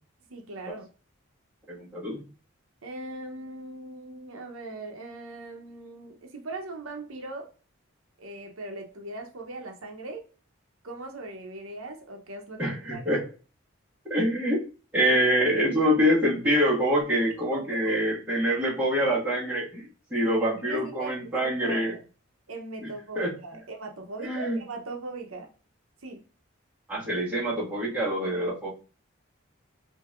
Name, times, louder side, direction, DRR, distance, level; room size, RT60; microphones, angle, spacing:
voice 1, 0.3-0.9 2.8-7.5 8.2-10.2 10.8-13.2 17.9-18.0 20.2-22.0 22.5-25.5 26.0-26.2, right 2 dB, 85° right, 3 dB, 0.9 m, -39 dB
voice 2, 1.7-2.2 12.6-13.2 14.1-14.6 14.9-22.0 23.1-23.3 24.2-24.6 26.9-28.7, equal, 10° right, -8 dB, 1.6 m, -25 dB
5.6 x 2.8 x 2.5 m, 0.36 s
head